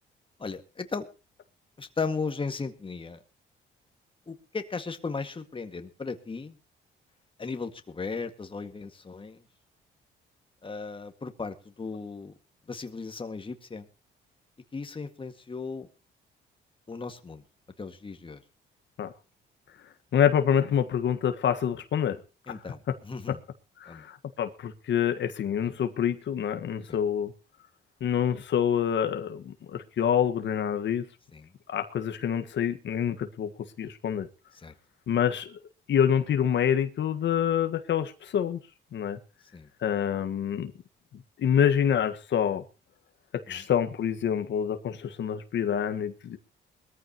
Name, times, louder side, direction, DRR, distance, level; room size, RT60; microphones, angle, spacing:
voice 1, 0.4-1.1 1.8-3.2 4.3-6.6 7.4-9.4 10.6-12.3 12.7-13.9 14.7-15.9 16.9-17.4 17.8-18.4 22.5-23.4 23.9-24.1 25.6-25.7 26.9-27.0 31.3-31.5 34.5-34.7 39.5-39.7 43.5-43.6, left 4 dB, 25° left, 2.0 m, -36 dB
voice 2, 20.1-22.2 23.8-27.3 28.0-31.1 31.7-33.5 33.8-34.3 35.1-35.6 35.9-38.6 38.9-39.2 39.8-40.7 41.4-42.6 43.3-46.4, left 9 dB, 65° left, 1.6 m, -26 dB
21.0 x 14.5 x 3.0 m
cardioid pair, 90°, 20 cm